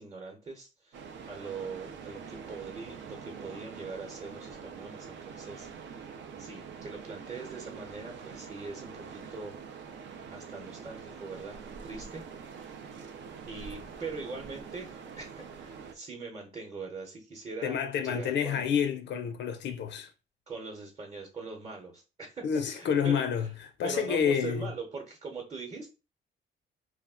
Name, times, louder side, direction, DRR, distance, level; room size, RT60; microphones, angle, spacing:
voice 1, 0.0-5.7 6.4-9.6 9.8-10.0 10.3-12.6 13.5-18.6 20.5-23.2 23.8-25.9, right 4 dB, 30° right, 0.9 m, -42 dB
sound 1, 0.9-16.0, right 6 dB, 70° right, 0.5 m, -45 dB
voice 2, 17.6-20.1 22.4-24.7, left 7 dB, 65° left, 0.4 m, -29 dB
2.4 x 2.1 x 3.6 m
cardioid pair, 90°, 20 cm